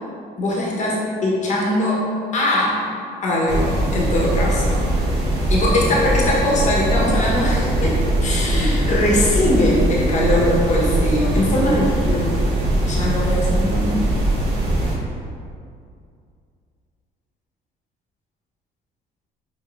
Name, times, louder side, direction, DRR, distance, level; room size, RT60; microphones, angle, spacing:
voice 1, 0.4-2.0 2.3-2.8 3.2-4.8 5.5-12.3 12.8-14.0, left 1 dB, 45° left, -4 dB, 1.1 m, -21 dB
sound 1, 3.5-15.0, right 1 dB, 85° right, 1.0 m, -21 dB
5.0 x 3.7 x 2.5 m, 2.3 s
cardioid pair, 110°, 17 cm